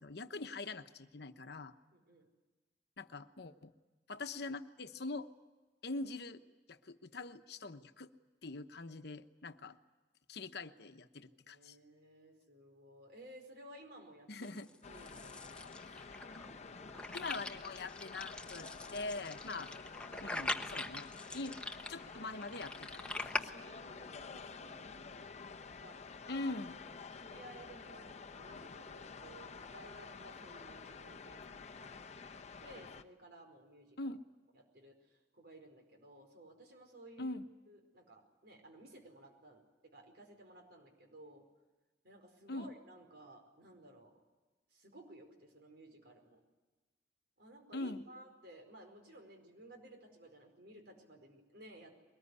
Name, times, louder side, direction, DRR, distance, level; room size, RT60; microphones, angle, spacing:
voice 1, 0.0-1.7 3.0-3.7 4.1-5.3 5.8-6.4 6.7-8.1 8.4-9.8 10.3-11.8 14.3-14.7 17.1-19.7 20.2-21.6 21.9-23.5 26.3-26.8 34.0-34.2 37.2-37.5 42.5-42.7 47.7-48.1, left 2 dB, 65° left, 9 dB, 1.0 m, -43 dB
voice 2, 1.9-2.3 7.6-7.7 11.5-14.5 14.9-15.7 23.3-25.2 25.7-26.4 26.8-34.0 34.5-37.4 37.7-41.4 42.0-44.2 44.7-46.4 47.4-51.9, right 1 dB, 65° right, 4 dB, 4.8 m, -57 dB
sound 1, 14.4-23.4, left 2 dB, 5° left, 1.1 m, -43 dB
sound 2, 14.8-33.0, left 5 dB, 40° left, 0.8 m, -50 dB
22.5 x 19.5 x 9.8 m, 1.2 s
head